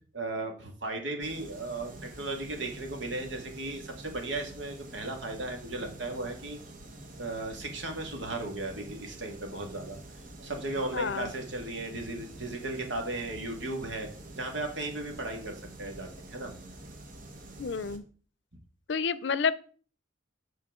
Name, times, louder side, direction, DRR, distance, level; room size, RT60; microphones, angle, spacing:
voice 1, 0.1-6.6 7.2-10.0 10.4-14.1 14.4-16.5, right 2 dB, 75° right, 3 dB, 2.0 m, -36 dB
sound 1, 1.2-18.0, right 1 dB, 45° right, 1.3 m, -47 dB
voice 2, 10.9-11.3 17.6-18.0 18.9-19.5, left 5 dB, 70° left, 17 dB, 0.5 m, -29 dB
12.5 x 4.5 x 3.7 m, 0.42 s
head